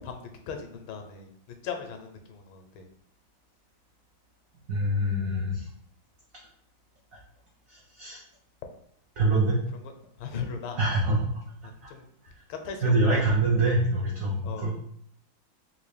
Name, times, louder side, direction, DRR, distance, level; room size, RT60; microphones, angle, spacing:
voice 1, 0.0-2.8 10.2-10.8 11.6-12.1 12.5-13.2 14.4-14.7, left 6 dB, 80° left, 5 dB, 1.4 m, -38 dB
voice 2, 4.7-5.7 7.1-7.2 7.7-8.2 9.2-9.6 10.8-11.3 11.8-11.9 12.8-14.7, right 2 dB, 80° right, -3 dB, 0.7 m, -25 dB
3.7 x 2.5 x 3.2 m, 0.70 s
omnidirectional pair, 2.2 m